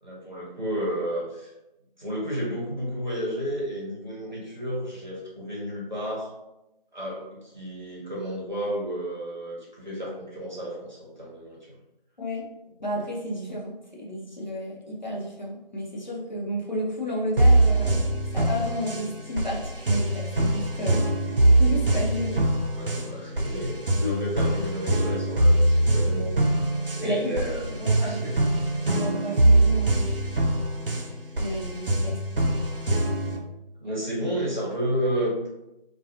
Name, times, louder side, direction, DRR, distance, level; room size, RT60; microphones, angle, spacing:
voice 1, 0.0-1.5 2.0-6.3 6.9-11.6 22.7-26.3 27.0-28.4 33.8-35.5, equal, 50° right, -5 dB, 0.9 m, -31 dB
voice 2, 12.8-18.0 18.3-22.4 24.0-24.1 27.0-27.3 27.8-28.2 28.9-30.0 31.4-32.2, equal, 50° left, -4 dB, 0.7 m, -32 dB
sound 1, 17.4-33.4, right 1 dB, 65° right, 0.5 m, -23 dB
2.4 x 2.2 x 2.7 m, 0.92 s
figure-of-eight pair, 175°, 29 cm